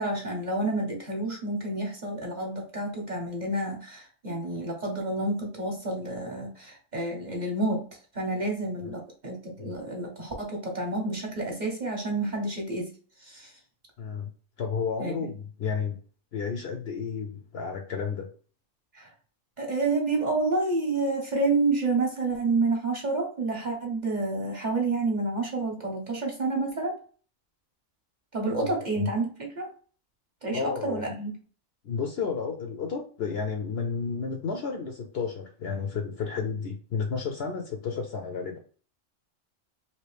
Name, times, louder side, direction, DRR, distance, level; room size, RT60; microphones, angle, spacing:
voice 1, 0.0-7.9 8.1-13.5 15.0-15.3 18.9-19.1 19.6-27.0 28.3-29.7 30.4-31.4, right 2 dB, 40° right, 0 dB, 0.9 m, -29 dB
voice 2, 14.0-14.3 14.6-16.0 16.3-18.3 28.6-28.7 29.0-29.1 30.5-31.1 31.8-38.6, left 5 dB, 60° left, 3 dB, 0.7 m, -32 dB
3.0 x 2.7 x 3.2 m, 0.40 s
omnidirectional pair, 1.4 m